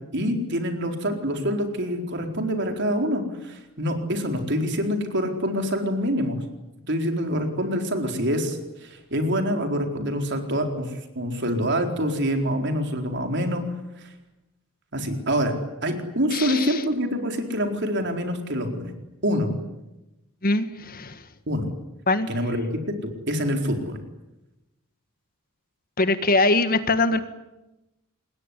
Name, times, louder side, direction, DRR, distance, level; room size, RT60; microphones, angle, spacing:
voice 1, 0.1-6.4 6.9-10.9 11.2-13.6 14.9-15.5 15.8-18.9 19.2-19.5 21.5-21.7 22.3-22.7 23.0-24.0, equal, 55° right, 4 dB, 4.3 m, -26 dB
voice 2, 16.3-16.8 20.4-21.2 22.1-22.3 26.0-27.2, left 2 dB, 45° left, 11 dB, 1.6 m, -22 dB
27.0 x 21.0 x 10.0 m, 0.98 s
head